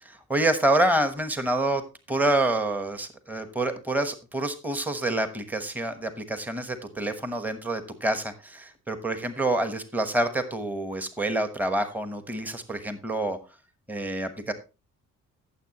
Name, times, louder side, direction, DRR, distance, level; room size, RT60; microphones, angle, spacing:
voice 1, 0.0-1.8 2.1-13.4 13.9-14.5, right 1 dB, 5° right, 9 dB, 1.1 m, -27 dB
14.5 x 7.2 x 3.0 m, 0.30 s
cardioid pair, 90°, 30 cm